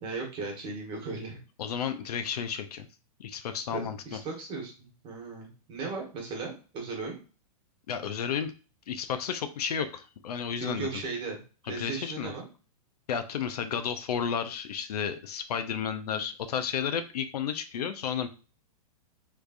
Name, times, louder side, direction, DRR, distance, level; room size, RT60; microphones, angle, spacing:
voice 1, 0.0-1.4 3.7-7.2 10.6-11.4 11.6-12.5, right 4 dB, 25° right, 0 dB, 1.5 m, -37 dB
voice 2, 1.6-2.9 3.2-4.2 7.9-8.5 8.9-10.9 11.8-12.3 13.1-18.3, left 7 dB, 80° left, 10 dB, 0.5 m, -32 dB
3.3 x 3.2 x 2.5 m, 0.34 s
hypercardioid pair, 140°, 20 cm